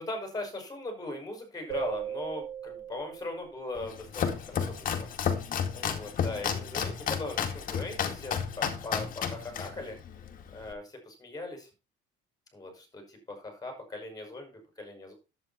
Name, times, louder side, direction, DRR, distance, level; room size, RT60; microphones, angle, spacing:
voice 1, 0.0-5.1 5.7-10.0 10.5-11.7 12.5-15.1, left 2 dB, 20° left, 3 dB, 6.0 m, -39 dB
sound 1, 1.7-4.0, right 10 dB, 90° right, 5.5 m, -38 dB
Domestic sounds home sounds, 3.8-10.7, left 7 dB, 40° left, 2.2 m, -32 dB
11.0 x 8.8 x 4.4 m, 0.30 s
cardioid pair, 145°, 21 cm